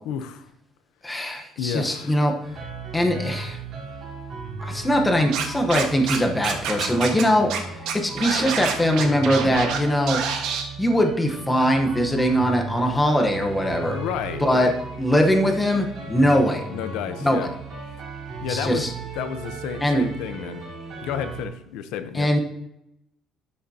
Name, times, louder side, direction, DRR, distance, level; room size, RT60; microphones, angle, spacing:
voice 1, 0.0-0.5 1.6-2.3 13.9-14.7 16.7-17.5 18.4-18.8 19.1-20.6 21.0-22.3, left 8 dB, 85° left, 10 dB, 0.8 m, -31 dB
voice 2, 1.0-2.3 2.9-3.6 4.6-7.5 7.9-10.2 10.8-14.0 14.4-14.7 15.0-16.6 17.2-17.5 18.5-18.9 19.8-20.1 22.1-22.4, equal, 10° left, 3 dB, 1.0 m, -21 dB
sound 1, 2.4-21.5, right 4 dB, 45° right, 3.7 m, -36 dB
Scratching (performance technique), 5.3-6.2 6.4-7.2 7.5-7.6 7.9-9.8 10.1-10.6, right 7 dB, 70° right, 1.4 m, -27 dB
12.5 x 6.5 x 2.8 m, 0.83 s
cardioid pair, 170°, 0 cm